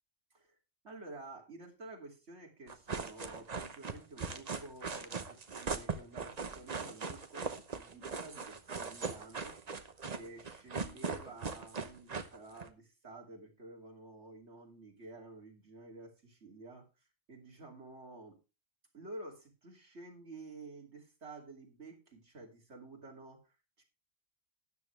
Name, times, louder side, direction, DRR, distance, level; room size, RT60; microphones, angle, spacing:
voice 1, 0.8-7.5 7.8-9.6 10.1-16.9 17.3-18.4 18.9-23.8, right 2 dB, 65° right, 1 dB, 3.1 m, -51 dB
sound 1, 2.7-12.7, right 5 dB, 35° right, 1.0 m, -39 dB
13.0 x 10.0 x 3.3 m, 0.28 s
omnidirectional pair, 1.2 m